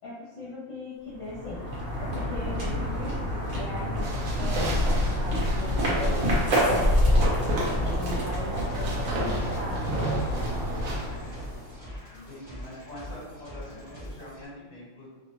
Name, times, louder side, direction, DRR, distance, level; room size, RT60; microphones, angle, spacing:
voice 1, 0.0-1.6 2.0-4.7 5.0-7.4 7.8-10.3 11.2-11.4, left 2 dB, 70° left, -8 dB, 1.0 m, -39 dB
sound 1, 1.1-11.9, equal, 90° right, 1.4 m, -27 dB
sound 2, 4.0-6.5 7.2-8.3 8.6-11.1, right 1 dB, 75° right, 1.1 m, -34 dB
sound 3, 7.2-14.5, equal, 15° right, 0.8 m, -43 dB
voice 2, 12.1-15.1, left 1 dB, 50° left, -7 dB, 1.3 m, -44 dB
3.1 x 2.1 x 2.9 m, 1.3 s
omnidirectional pair, 1.5 m